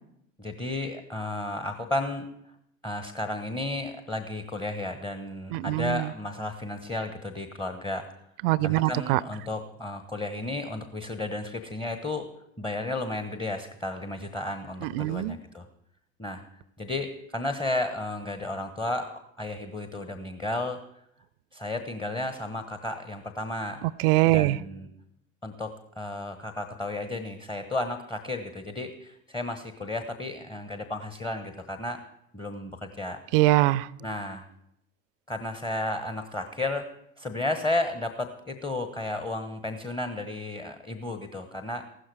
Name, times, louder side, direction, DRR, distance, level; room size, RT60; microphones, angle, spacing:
voice 1, 0.4-2.3 2.8-8.1 8.6-12.3 12.6-15.6 16.2-16.4 16.8-20.8 21.5-23.8 24.3-24.9 25.4-32.0 32.3-33.2 34.0-34.4 35.3-36.9 37.2-41.9, left 2 dB, 10° left, 7 dB, 1.2 m, -33 dB
voice 2, 5.5-6.1 8.4-9.2 14.8-15.4 23.8-24.6 33.3-33.9, right 17 dB, 45° right, 21 dB, 0.6 m, -23 dB
15.5 x 12.5 x 4.8 m, 0.74 s
figure-of-eight pair, 75°, 38 cm